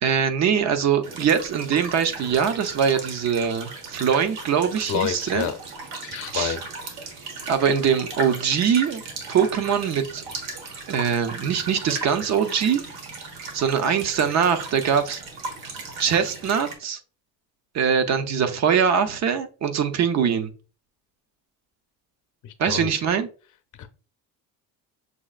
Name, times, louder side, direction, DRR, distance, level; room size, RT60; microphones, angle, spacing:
voice 1, 0.0-5.5 6.3-6.6 7.5-9.0 9.3-10.2 10.9-12.8 13.5-15.2 16.0-17.0 17.7-20.5 22.6-23.3, right 7 dB, 45° right, 9 dB, 0.7 m, -22 dB
sound 1, 1.0-16.7, right 3 dB, 85° right, 1.5 m, -37 dB
voice 2, 4.9-5.6 6.0-6.6 22.4-23.0 23.8-23.9, left 8 dB, 55° left, 8 dB, 0.7 m, -29 dB
6.2 x 3.1 x 2.4 m, 0.36 s
cardioid pair, 120°, 36 cm